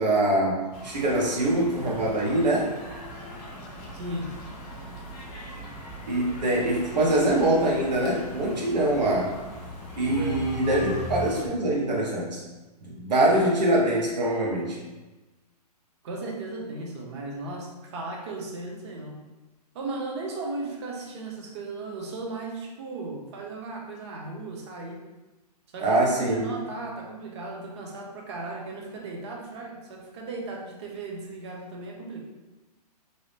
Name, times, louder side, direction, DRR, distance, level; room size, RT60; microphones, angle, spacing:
voice 1, 0.0-2.7 6.1-9.4 10.0-12.4 12.8-14.8 25.8-26.6, right 1 dB, 90° right, -3 dB, 1.0 m, -24 dB
sound 1, 0.7-11.5, right 1 dB, 20° left, 0.4 m, -39 dB
voice 2, 3.9-4.3 10.1-10.5 13.3-13.4 16.0-19.2 19.7-25.0 25.7-32.2, right 2 dB, 40° right, 0 dB, 0.6 m, -36 dB
2.7 x 2.0 x 3.2 m, 1.1 s
hypercardioid pair, 155°, 21 cm